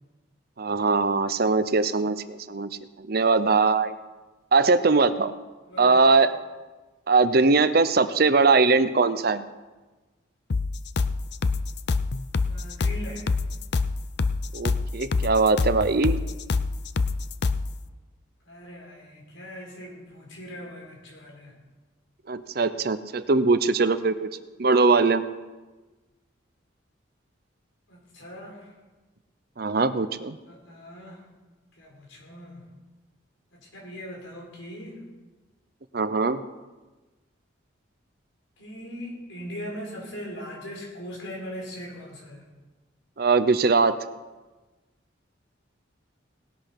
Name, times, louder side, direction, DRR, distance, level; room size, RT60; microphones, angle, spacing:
voice 1, 0.6-2.7 3.1-4.0 4.5-5.3 5.8-6.3 7.1-9.4 14.5-16.2 22.3-24.3 24.6-25.2 29.6-30.4 35.9-36.4 43.2-44.0, right 4 dB, 50° right, 13 dB, 0.6 m, -21 dB
voice 2, 5.7-6.1 12.4-13.3 18.4-21.6 27.9-28.7 30.4-31.2 31.8-32.6 33.5-35.0 38.6-42.5, equal, 85° left, -2 dB, 5.0 m, -40 dB
sound 1, 10.5-17.7, left 4 dB, 55° left, 0.5 m, -26 dB
18.5 x 8.4 x 5.9 m, 1.2 s
head